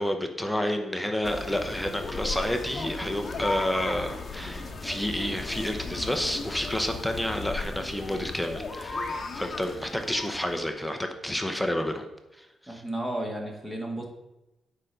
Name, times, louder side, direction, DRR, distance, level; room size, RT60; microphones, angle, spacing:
voice 1, 0.0-12.1 12.4-12.8, left 1 dB, 5° left, 5 dB, 0.8 m, -30 dB
sound 1, 1.2-10.7, left 3 dB, 35° left, 1.0 m, -36 dB
voice 2, 12.7-14.0, right 1 dB, 15° right, 1 dB, 1.9 m, -33 dB
8.4 x 5.0 x 6.6 m, 0.94 s
cardioid pair, 135°, 0 cm